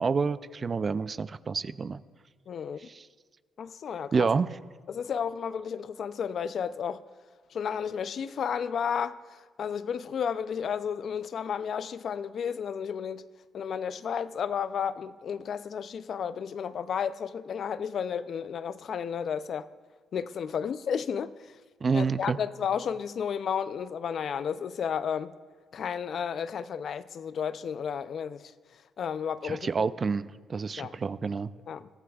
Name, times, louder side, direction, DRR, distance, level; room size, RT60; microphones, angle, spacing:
voice 1, 0.0-2.0 2.8-3.1 4.1-4.6 21.8-22.4 29.4-31.5, right 5 dB, 40° right, 0.4 m, -28 dB
voice 2, 2.5-2.8 3.6-4.3 4.9-7.0 7.5-9.2 9.6-13.2 13.5-19.7 20.1-21.3 21.9-25.3 25.7-28.4 29.0-29.9 30.8-30.9 31.7-31.9, left 7 dB, 60° left, 0.4 m, -32 dB
22.0 x 14.5 x 2.4 m
cardioid pair, 90°, 0 cm